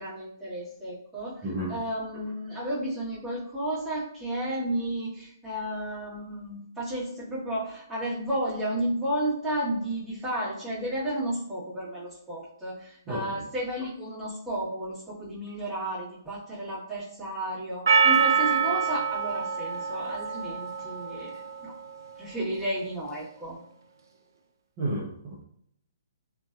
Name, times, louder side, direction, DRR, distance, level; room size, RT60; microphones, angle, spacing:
voice 1, 0.0-21.3 21.6-21.7 22.2-23.6, right 1 dB, 5° right, -11 dB, 1.4 m, -32 dB
voice 2, 1.4-1.7 13.1-13.5 24.8-25.4, right 1 dB, 30° right, -6 dB, 0.6 m, -32 dB
Percussion, 17.9-22.2, right 6 dB, 70° right, 0.4 m, -26 dB
2.6 x 2.3 x 2.4 m, 0.69 s
hypercardioid pair, 140°, 2 cm